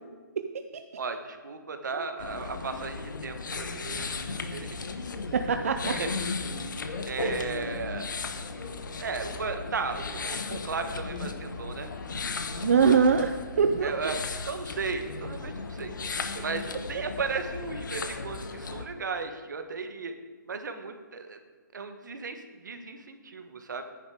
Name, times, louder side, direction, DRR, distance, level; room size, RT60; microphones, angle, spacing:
voice 1, 1.0-4.8 5.9-6.2 7.0-8.1 9.0-11.9 13.8-15.9 16.4-20.1 20.5-21.4 21.7-23.8, right 4 dB, 70° right, 7 dB, 1.3 m, -35 dB
sound 1, 2.2-18.8, left 4 dB, 75° left, 1.1 m, -36 dB
voice 2, 5.3-6.0 7.2-7.4 12.6-14.2 16.4-16.5, right 6 dB, 45° right, 7 dB, 0.5 m, -24 dB
10.5 x 10.0 x 4.8 m, 1.4 s
hypercardioid pair, 170°, 10 cm